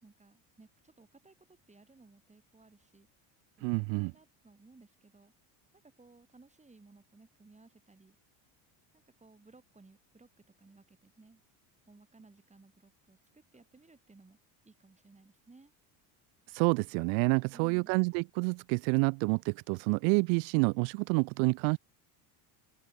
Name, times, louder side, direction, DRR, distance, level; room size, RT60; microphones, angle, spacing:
voice 1, 0.0-3.1 3.6-5.3 5.8-8.2 8.9-10.3 10.6-11.4 11.9-14.4 14.6-15.7 17.5-18.0, right 3 dB, 15° right, 4.5 m, -59 dB
voice 2, 3.6-4.1 16.5-21.8, right 40 dB or more, 80° right, 0.7 m, -28 dB
open air
supercardioid pair, 100°, 47 cm